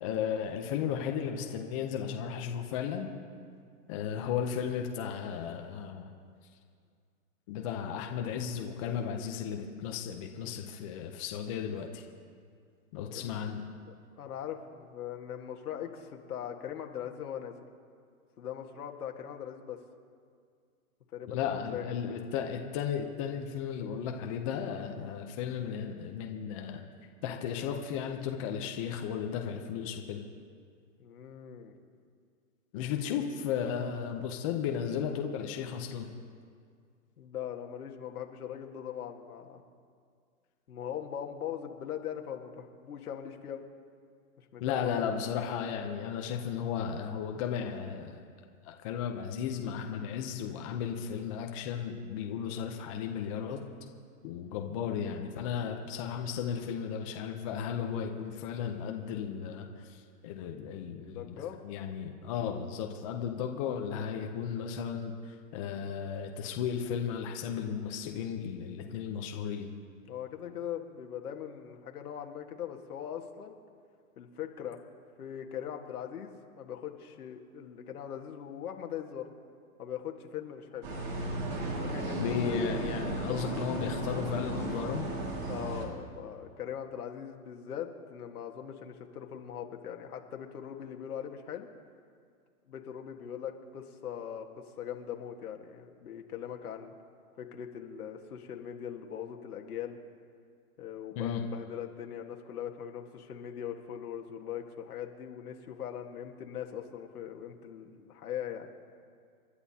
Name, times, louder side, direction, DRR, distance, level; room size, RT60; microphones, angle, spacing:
voice 1, 0.0-3.1 3.9-6.1 7.5-12.0 12.9-13.6 21.3-26.9 27.2-30.2 32.7-36.1 44.6-48.2 48.6-53.6 54.2-69.7 82.2-85.1 101.2-101.4, left 7 dB, 25° left, 3 dB, 0.7 m, -35 dB
voice 2, 13.9-17.6 18.4-19.8 21.1-21.9 31.0-31.8 37.2-39.6 40.7-43.6 44.4-45.1 61.0-61.6 70.1-73.6 74.2-74.8 75.2-79.3 79.8-80.9 81.7-82.7 83.1-83.4 85.5-91.7 92.7-96.9 97.4-100.0 100.8-108.7, left 9 dB, 80° left, 3 dB, 1.8 m, -41 dB
sound 1, 80.8-85.9, right 2 dB, 30° right, 2.2 m, -35 dB
29.0 x 11.5 x 2.9 m, 2.2 s
hypercardioid pair, 160°, 44 cm